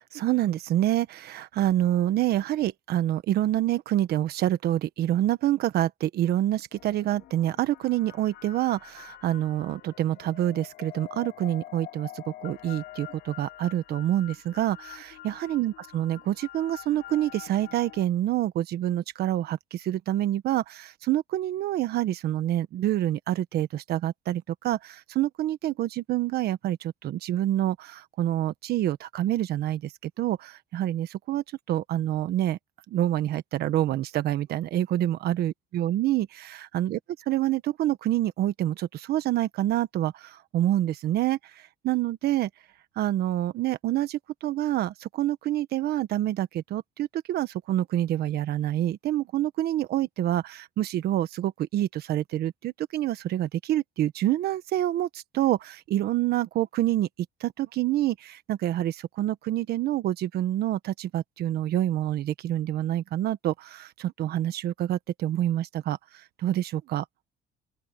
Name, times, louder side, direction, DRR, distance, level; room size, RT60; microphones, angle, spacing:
voice 1, 0.1-32.6 32.9-37.0 37.3-42.5 43.0-57.1 57.4-67.0, right 13 dB, 70° right, 1.4 m, -27 dB
sound 1, 6.7-18.1, left 14 dB, 75° left, 4.3 m, -46 dB
open air
cardioid pair, 110°, 17 cm